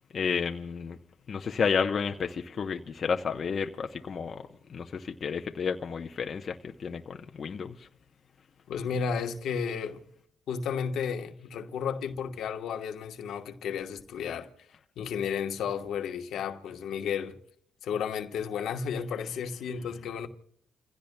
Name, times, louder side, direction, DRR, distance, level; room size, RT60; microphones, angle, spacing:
voice 1, 0.1-1.0 1.3-4.4 4.7-7.7, left 6 dB, 45° left, 0.8 m, -31 dB
voice 2, 8.7-10.0 10.5-14.5 15.0-17.4 17.8-20.3, left 7 dB, 75° left, 1.2 m, -33 dB
29.0 x 16.0 x 2.3 m
cardioid pair, 90°, 0 cm